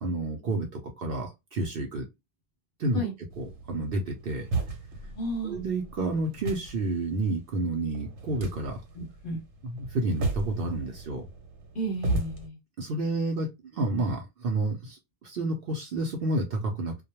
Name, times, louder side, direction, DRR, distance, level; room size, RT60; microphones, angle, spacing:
voice 1, 0.0-2.1 2.8-3.1 3.4-4.5 5.4-8.8 9.6-11.2 12.8-17.1, right 2 dB, 55° right, 0.7 m, -30 dB
sound 1, 3.3-12.5, right 2 dB, 80° right, 1.1 m, -36 dB
voice 2, 5.0-5.6 8.9-9.4 11.7-12.6, right 1 dB, 50° left, 0.7 m, -33 dB
2.2 x 2.1 x 2.8 m
omnidirectional pair, 1.3 m